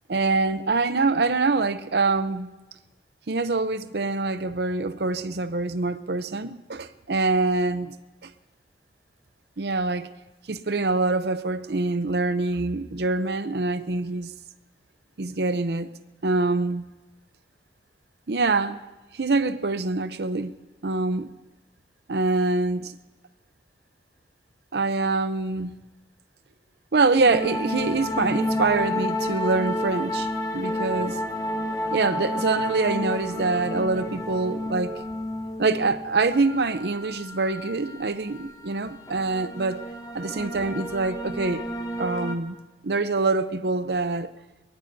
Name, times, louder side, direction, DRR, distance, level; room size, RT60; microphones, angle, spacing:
voice 1, 0.1-2.5 3.3-7.9 8.2-8.3 9.6-10.1 10.5-14.3 15.2-15.9 16.2-16.8 18.3-18.8 19.1-20.6 20.8-21.3 22.1-23.0 24.7-25.8 26.9-31.2 31.9-35.0 35.6-39.8 40.1-41.6 42.0-42.6 42.8-44.3, right 3 dB, 65° right, 0.7 m, -25 dB
sound 1, 27.3-42.4, left 1 dB, 20° left, 1.0 m, -31 dB
23.0 x 21.5 x 2.7 m
head